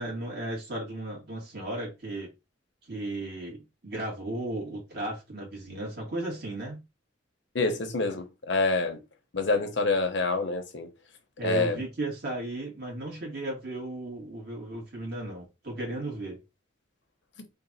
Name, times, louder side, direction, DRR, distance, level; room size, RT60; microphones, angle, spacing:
voice 1, 0.0-2.3 2.9-6.8 11.4-16.4, right 1 dB, 55° right, 1.9 m, -35 dB
voice 2, 7.5-9.0 9.3-10.9 11.4-11.8, left 3 dB, 65° left, 0.9 m, -27 dB
3.7 x 2.5 x 4.1 m
head